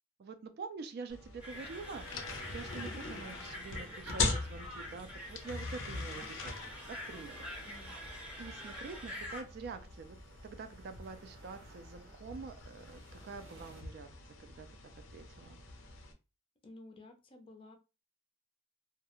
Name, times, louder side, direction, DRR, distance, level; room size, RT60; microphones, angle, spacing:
voice 1, 0.2-2.0 2.5-6.5 6.9-8.0 8.4-10.2 10.4-14.7 15.1-15.6, right 4 dB, 55° right, 8 dB, 0.3 m, -46 dB
sound 1, 1.1-16.1, left 3 dB, 80° left, 0.5 m, -42 dB
sound 2, 1.4-9.4, left 1 dB, 5° right, 0.7 m, -46 dB
sound 3, 1.5-13.8, right 2 dB, 85° right, 0.7 m, -60 dB
voice 2, 16.6-17.8, left 2 dB, 25° left, 4 dB, 0.4 m, -53 dB
2.3 x 2.1 x 2.9 m, 0.30 s
head